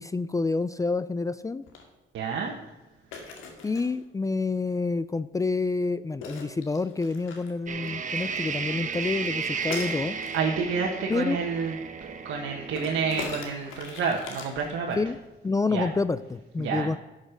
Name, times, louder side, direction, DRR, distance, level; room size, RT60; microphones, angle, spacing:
voice 1, 0.0-1.6 3.6-10.2 11.1-11.4 15.0-15.2 15.4-17.0, left 3 dB, 15° left, 15 dB, 0.4 m, -28 dB
sound 1, 1.6-1.9 3.1-4.0 6.2-8.3 9.7-10.4 12.8-15.2, left 4 dB, 90° left, 2.0 m, -40 dB
voice 2, 2.1-2.5 10.3-11.7 12.0-15.0 15.7-15.9 16.6-16.9, right 5 dB, 70° right, -1 dB, 1.4 m, -29 dB
sound 2, 7.7-13.4, right 5 dB, 40° right, 1.1 m, -34 dB
12.0 x 6.5 x 5.1 m, 1.1 s
cardioid pair, 90°, 20 cm